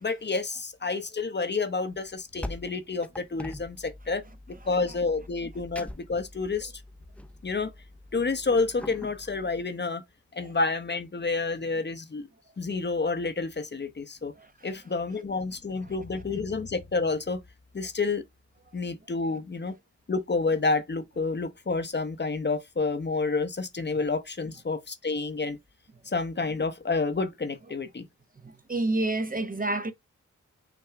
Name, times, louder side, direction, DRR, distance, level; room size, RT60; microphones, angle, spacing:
voice 1, 0.0-4.2 4.5-6.7 7.4-7.7 8.1-10.0 10.3-12.3 12.6-14.3 14.6-17.4 17.7-18.2 18.7-19.7 20.1-25.6 26.1-28.1, left 3 dB, 35° left, 0.8 m, -29 dB
sound 1, 1.9-9.6, left 1 dB, 5° left, 0.7 m, -43 dB
voice 2, 14.4-14.7 28.4-29.9, right 2 dB, 30° right, 0.8 m, -29 dB
5.9 x 2.3 x 3.4 m
cardioid pair, 45°, 30 cm